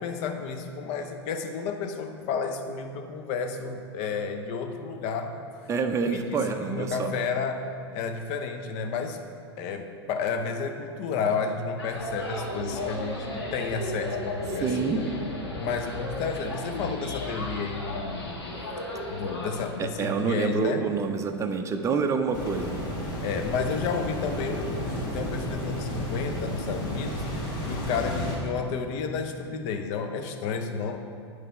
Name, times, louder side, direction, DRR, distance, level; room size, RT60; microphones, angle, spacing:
voice 1, 0.0-5.4 6.0-9.2 9.6-15.0 15.6-18.4 19.1-20.9 23.2-27.3 27.7-31.0, left 5 dB, 50° left, 6 dB, 0.7 m, -31 dB
voice 2, 5.7-7.2 14.6-15.0 19.8-22.8, right 5 dB, 20° right, 5 dB, 0.6 m, -27 dB
sound 1, 11.8-19.6, left 1 dB, 90° left, 1.7 m, -34 dB
sound 2, 22.3-28.4, equal, 30° left, 1.8 m, -32 dB
9.0 x 3.2 x 5.6 m, 2.3 s
hypercardioid pair, 110°, 14 cm